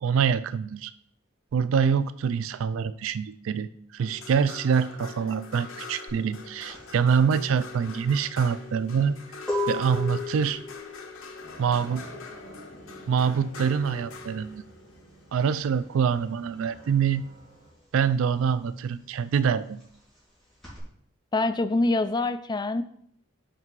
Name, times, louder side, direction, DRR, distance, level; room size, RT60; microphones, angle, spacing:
voice 1, 0.0-0.9 1.5-9.1 9.7-10.6 11.6-12.0 13.1-14.6 15.3-17.2 17.9-19.8, right 6 dB, 75° right, 15 dB, 0.3 m, -25 dB
sound 1, 4.0-16.3 18.0-18.1, left 3 dB, 80° left, 1.0 m, -44 dB
sound 2, 6.1-16.3 16.6-20.8, left 2 dB, 5° left, 3.3 m, -37 dB
sound 3, 11.4-17.7, right 1 dB, 25° right, 1.9 m, -50 dB
voice 2, 21.3-22.8, left 2 dB, 20° left, 10 dB, 0.3 m, -25 dB
5.9 x 5.6 x 4.6 m, 0.65 s
head